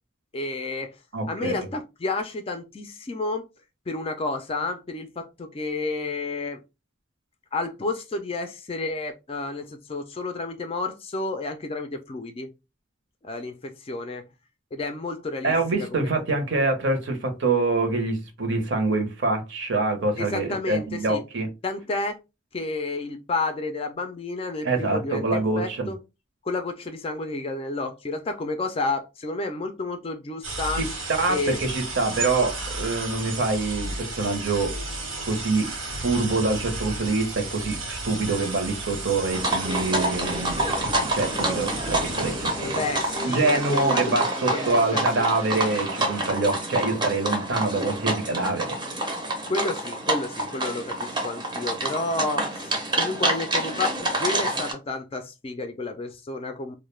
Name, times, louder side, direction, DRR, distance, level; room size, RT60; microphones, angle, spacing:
voice 1, 0.3-0.9 1.3-3.4 3.9-6.6 7.5-12.5 13.2-14.3 14.7-16.1 20.2-21.2 21.6-22.2 22.5-26.0 26.4-30.8 31.3-31.6 42.6-45.3 49.5-56.7, left 3 dB, 30° left, 0.3 m, -31 dB
voice 2, 1.1-1.7 15.4-21.5 24.6-25.9 30.7-30.9 31.2-34.7 35.2-42.8 43.2-48.8, right 3 dB, 60° right, 0.7 m, -25 dB
sound 1, 30.4-46.3, right 2 dB, 85° right, 1.1 m, -34 dB
sound 2, 39.3-54.7, right 1 dB, 20° right, 0.6 m, -27 dB
2.3 x 2.1 x 3.0 m
head